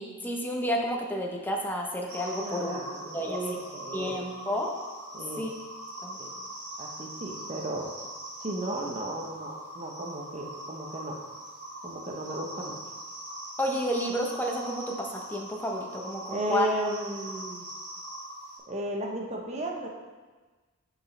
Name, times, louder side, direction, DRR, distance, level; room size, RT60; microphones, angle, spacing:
voice 1, 0.0-2.8 3.1-3.4 3.9-4.7 5.4-5.5 6.0-6.2 13.6-16.7, equal, 10° left, 0 dB, 0.8 m, -31 dB
sound 1, 2.1-18.6, right 1 dB, 80° right, 2.2 m, -42 dB
voice 2, 2.4-4.2 5.1-5.4 6.2-6.3 6.8-7.9 8.4-11.2 11.8-12.8 16.3-17.7 18.7-19.9, right 1 dB, 30° right, 0 dB, 0.8 m, -34 dB
9.1 x 5.1 x 3.2 m, 1.3 s
head